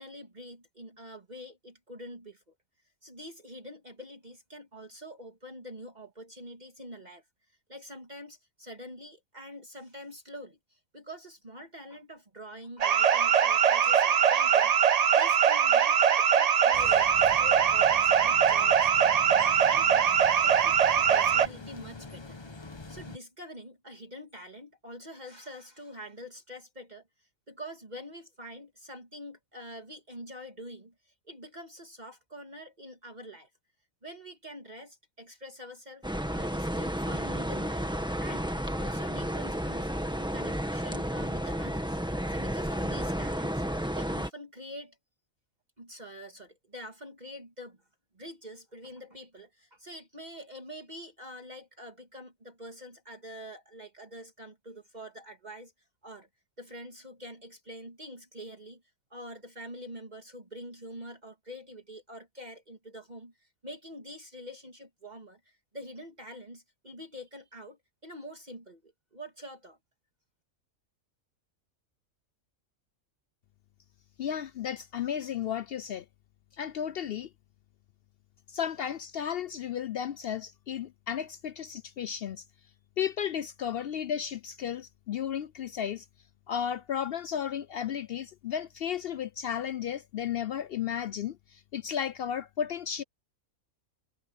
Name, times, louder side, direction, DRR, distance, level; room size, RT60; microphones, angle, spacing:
voice 1, 0.0-2.4 3.0-7.2 7.7-14.8 15.1-20.1 20.4-22.4 22.9-27.0 27.5-33.5 34.0-36.1 36.3-39.9 40.2-42.0 42.3-45.0 45.8-47.8 48.1-55.7 56.0-56.3 56.6-58.8 59.1-69.8, equal, 30° right, 2.2 m, -45 dB
sound 1, 12.8-21.5, right 8 dB, 85° right, 0.3 m, -22 dB
sound 2, 16.7-23.2, left 3 dB, 20° left, 1.0 m, -45 dB
sound 3, 36.0-44.3, equal, 5° right, 1.6 m, -32 dB
voice 2, 74.2-76.0 76.6-77.3 78.5-82.4 83.0-86.0 86.5-93.0, left 9 dB, 70° left, 0.6 m, -34 dB
omnidirectional pair, 1.5 m